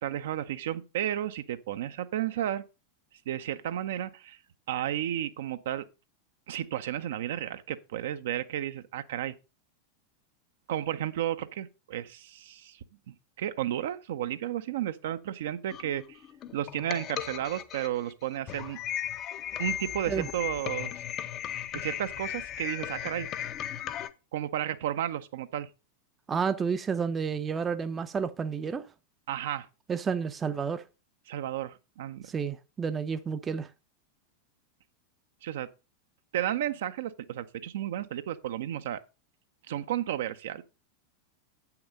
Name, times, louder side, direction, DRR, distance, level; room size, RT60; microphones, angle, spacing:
voice 1, 0.0-2.6 3.3-4.4 4.7-5.8 6.5-9.3 10.7-12.8 13.4-16.2 16.5-18.8 19.6-21.0 21.7-23.3 24.3-25.7 29.3-29.7 31.3-32.3 35.4-35.7 36.3-39.0 39.7-40.6, right 11 dB, 55° right, 0.6 m, -33 dB
sound 1, 15.7-24.1, left 10 dB, 35° left, 0.6 m, -36 dB
voice 2, 26.3-28.9 29.9-30.8 32.3-33.7, right 6 dB, 20° right, 0.6 m, -30 dB
8.6 x 5.9 x 5.3 m
figure-of-eight pair, 90°, 0 cm